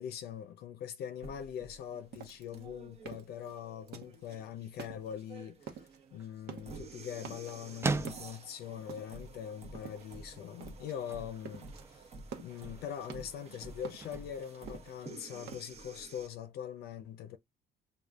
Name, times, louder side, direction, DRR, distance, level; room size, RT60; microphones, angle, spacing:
voice 1, 0.0-12.0 12.4-17.4, left 9 dB, 70° left, 0.6 m, -42 dB
sound 1, 1.2-16.3, right 3 dB, 40° right, 0.9 m, -51 dB
sound 2, 2.1-4.4 4.7-5.3 5.6-6.0 6.3-6.9 7.2-7.7 8.1-9.3 9.7-10.3 10.6-11.0 11.3-11.8 12.2-13.5 13.8-15.6, right 7 dB, 75° right, 0.9 m, -48 dB
sound 3, 5.8-15.6, right 3 dB, 15° right, 0.4 m, -43 dB
6.5 x 2.3 x 2.3 m
cardioid pair, 110°, 17 cm